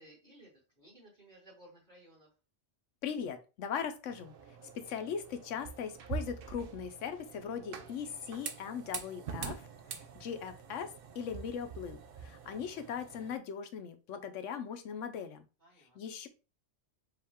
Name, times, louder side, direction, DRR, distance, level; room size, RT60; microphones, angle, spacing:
voice 1, 0.0-2.3 15.6-16.0, right 1 dB, 40° right, -4 dB, 2.0 m, -58 dB
voice 2, 3.0-4.3 4.7-15.5 15.9-16.3, left 7 dB, 75° left, 9 dB, 1.0 m, -39 dB
sound 1, 4.1-13.4, right 6 dB, 60° right, 0.7 m, -45 dB
4.9 x 2.5 x 3.5 m, 0.31 s
omnidirectional pair, 1.3 m